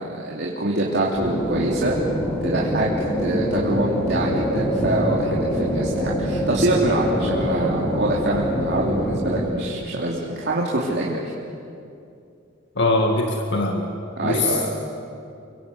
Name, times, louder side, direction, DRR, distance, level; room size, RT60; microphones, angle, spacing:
voice 1, 0.0-2.0 2.4-2.9 3.2-11.2 14.2-14.7, right 1 dB, 60° right, -4 dB, 3.2 m, -24 dB
sound 1, 1.1-9.5, equal, 15° left, 3.9 m, -24 dB
voice 2, 12.8-13.9 14.2-14.6, left 2 dB, 60° left, 2 dB, 2.0 m, -21 dB
30.0 x 24.0 x 8.2 m, 2.5 s
head